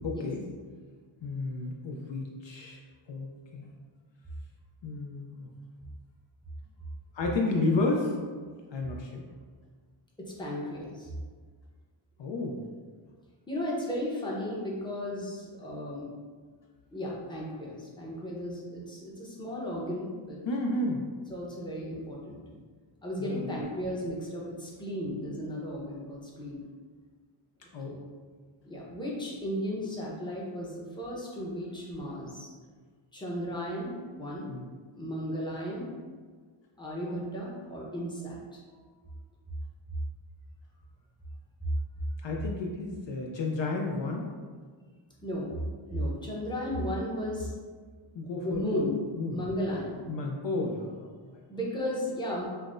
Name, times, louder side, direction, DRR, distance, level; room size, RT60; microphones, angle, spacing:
voice 1, 0.0-0.4 1.2-2.8 3.1-3.7 4.8-5.5 7.1-8.2 8.7-9.2 12.2-12.6 20.5-21.1 23.2-23.5 27.7-28.0 34.5-34.7 42.2-44.3 48.1-48.9 49.2-49.4 50.1-51.4, left 2 dB, 60° left, 0 dB, 0.5 m, -32 dB
voice 2, 10.2-11.1 13.5-16.1 16.9-20.4 21.3-22.5 23.0-26.6 27.8-27.9 28.6-32.5 33.1-34.5 34.9-35.9 36.8-38.9 45.2-45.5 45.9-47.5 48.4-49.0 49.3-50.0 51.5-52.5, equal, 10° left, -4 dB, 0.7 m, -35 dB
5.5 x 2.0 x 2.5 m, 1.5 s
wide cardioid pair, 100°, 50 cm